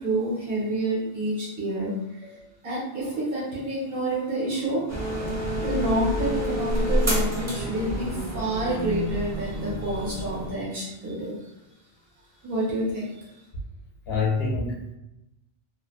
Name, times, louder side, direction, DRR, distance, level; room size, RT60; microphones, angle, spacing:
voice 1, 0.0-2.2 2.6-4.9 5.6-11.4 12.4-13.3, right 1 dB, 65° right, -5 dB, 1.1 m, -28 dB
sound 1, 4.9-10.5, equal, 20° right, 0.4 m, -28 dB
voice 2, 14.1-14.9, left 4 dB, 75° left, -1 dB, 0.8 m, -27 dB
2.4 x 2.1 x 2.3 m, 0.89 s
omnidirectional pair, 1.1 m